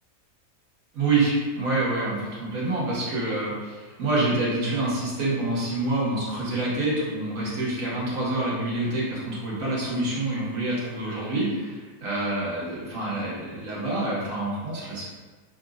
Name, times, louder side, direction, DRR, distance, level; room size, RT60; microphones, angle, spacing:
voice 1, 0.9-15.0, right 2 dB, 65° right, -7 dB, 1.6 m, -27 dB
5.8 x 2.8 x 2.4 m, 1.4 s
omnidirectional pair, 1.6 m